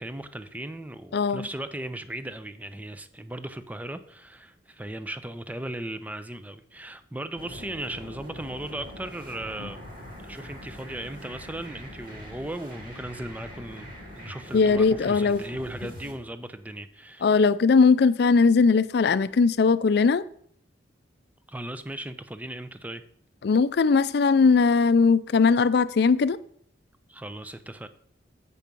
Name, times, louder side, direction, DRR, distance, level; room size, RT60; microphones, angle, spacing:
voice 1, 0.0-9.8 10.2-13.9 14.2-17.3 21.5-23.0 27.1-27.9, right 1 dB, 10° right, 0.5 m, -37 dB
voice 2, 1.1-1.5 14.5-15.4 17.2-20.2 23.4-26.4, left 4 dB, 60° left, 0.4 m, -20 dB
sound 1, 7.4-16.1, equal, 50° right, 2.3 m, -43 dB
8.4 x 6.0 x 5.2 m
head